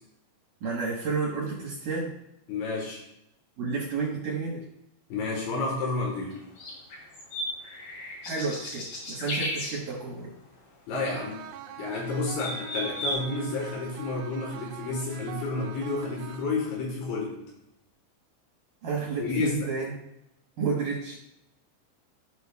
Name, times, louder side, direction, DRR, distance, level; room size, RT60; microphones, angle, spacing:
voice 1, 0.6-2.1 3.6-4.7 8.2-10.4 18.8-19.9 20.6-21.2, right 4 dB, 70° right, -3 dB, 2.1 m, -31 dB
voice 2, 2.5-3.0 5.1-6.4 10.9-11.4 11.8-17.5 19.2-19.7, left 3 dB, 75° left, -2 dB, 3.7 m, -30 dB
sound 1, 6.3-9.8 11.7-12.0 12.2-13.1, left 1 dB, 60° left, 4.6 m, -34 dB
sound 2, 10.9-16.9, right 10 dB, 85° right, 2.9 m, -45 dB
15.0 x 5.2 x 2.3 m, 0.84 s
omnidirectional pair, 5.4 m